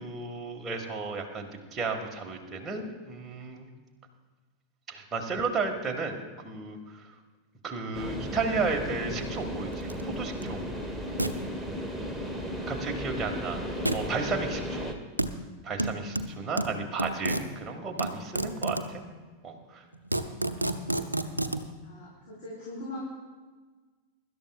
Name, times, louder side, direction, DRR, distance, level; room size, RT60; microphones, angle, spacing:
voice 1, 0.0-3.7 4.9-6.2 6.4-7.1 7.6-10.6 12.7-13.6 13.9-15.0 15.6-19.0 19.4-19.9, right 4 dB, 20° right, 1 dB, 1.9 m, -33 dB
sound 1, 7.9-15.0, equal, ahead, 1.4 m, -35 dB
sound 2, 9.9-10.0 10.4-10.5 11.2-11.3 13.9-14.1 15.2-15.3 15.8-17.5 18.0-18.9 19.6-19.7 19.9-21.6, right 1 dB, 85° right, 0.7 m, -29 dB
voice 2, 21.8-23.0, left 1 dB, 50° left, -7 dB, 4.4 m, -40 dB
23.5 x 12.0 x 2.5 m, 1.4 s
figure-of-eight pair, 90°, 0 cm